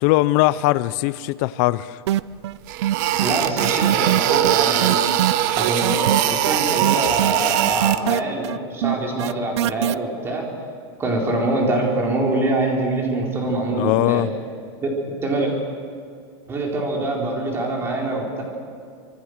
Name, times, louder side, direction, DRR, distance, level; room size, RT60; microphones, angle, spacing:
voice 1, 0.0-2.0 13.7-14.3, left 17 dB, 40° left, 0.6 m, -20 dB
sound 1, 2.1-2.6 2.8-9.9, right 13 dB, 75° right, 0.6 m, -22 dB
sound 2, 2.2-2.3 2.7-8.0, right 12 dB, 45° right, 1.1 m, -21 dB
voice 2, 3.2-5.0 5.6-10.5 11.0-14.2 14.8-14.9 15.2-15.5 16.5-18.4, right 2 dB, 15° right, 4.3 m, -24 dB
25.5 x 24.5 x 6.6 m
supercardioid pair, 165°, 14 cm